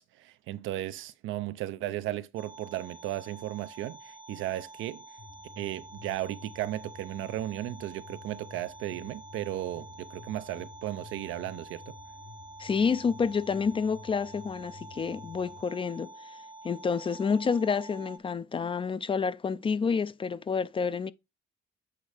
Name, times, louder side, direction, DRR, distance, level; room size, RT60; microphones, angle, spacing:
voice 1, 0.0-5.1 5.6-11.8, right 14 dB, 85° right, 0.5 m, -35 dB
sound 1, 2.4-18.2, right 2 dB, 25° right, 0.6 m, -48 dB
sound 2, 5.2-15.6, left 5 dB, 55° left, 1.0 m, -51 dB
voice 2, 12.6-16.4 16.6-21.1, left 5 dB, 25° left, 0.3 m, -29 dB
8.0 x 3.1 x 4.9 m
cardioid pair, 90°, 20 cm